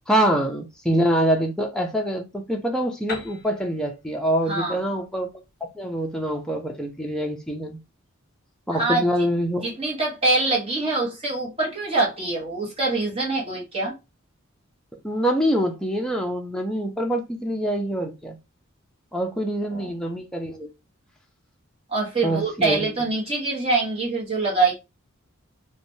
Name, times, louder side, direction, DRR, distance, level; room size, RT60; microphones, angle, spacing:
voice 1, 0.1-5.3 5.6-7.8 8.7-9.7 15.0-18.4 19.1-20.7 22.2-22.8, right 1 dB, 5° left, 0.4 m, -25 dB
Piano, 3.1-6.7, left 3 dB, 45° left, 0.7 m, -41 dB
voice 2, 4.5-4.8 8.7-9.0 9.6-13.9 19.7-20.0 21.9-24.7, right 3 dB, 30° right, 1.0 m, -24 dB
3.2 x 2.2 x 2.6 m
head